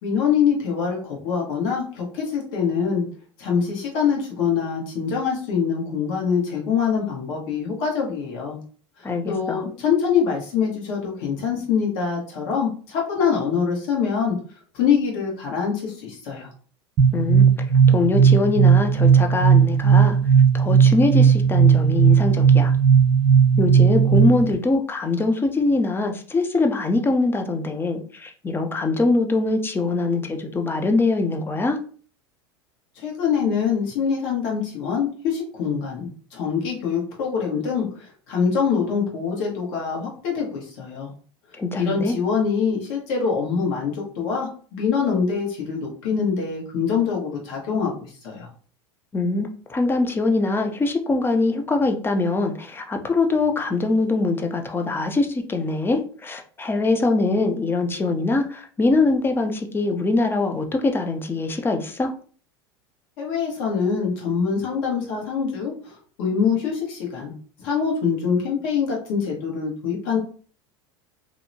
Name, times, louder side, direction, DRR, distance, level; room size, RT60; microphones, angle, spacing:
voice 1, 0.0-3.0 3.4-8.6 9.3-14.4 14.7-16.5 33.0-41.1 41.7-48.5 63.2-67.3 67.6-70.2, left 6 dB, 65° left, -1 dB, 1.1 m, -24 dB
voice 2, 9.0-9.6 17.1-17.5 17.9-20.2 20.5-22.7 23.6-31.8 41.6-42.2 49.1-62.1, left 3 dB, 15° left, 5 dB, 0.5 m, -23 dB
sound 1, 17.0-24.5, right 7 dB, 50° right, 0.8 m, -16 dB
2.7 x 2.1 x 2.6 m, 0.42 s
hypercardioid pair, 95°, 14 cm